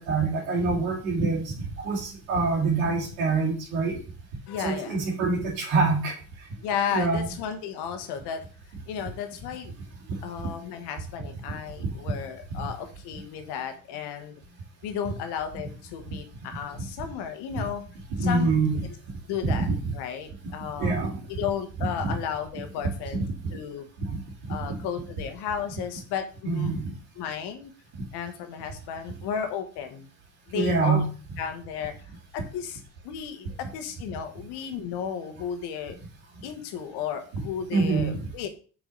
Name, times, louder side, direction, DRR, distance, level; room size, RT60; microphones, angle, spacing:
voice 1, 0.0-4.0 4.6-6.5 6.9-7.3 11.8-11.9 12.5-12.6 17.5-17.7 18.1-18.8 19.4-19.9 20.8-21.2 22.0-22.1 23.4-23.5 24.1-24.2 24.5-24.9 26.4-27.0 30.5-31.1 37.7-38.2, right 3 dB, 90° right, -6 dB, 2.1 m, -26 dB
voice 2, 4.5-5.0 6.6-8.4 8.9-9.7 10.2-14.4 14.8-17.8 18.2-18.5 19.3-19.7 19.9-20.9 21.3-23.2 23.5-23.9 24.5-26.7 27.2-27.7 28.1-30.1 30.5-31.0 31.4-32.0 32.3-36.0 36.4-38.5, left 8 dB, 80° left, 7 dB, 1.4 m, -33 dB
6.5 x 4.9 x 3.9 m, 0.40 s
hypercardioid pair, 55°, 40 cm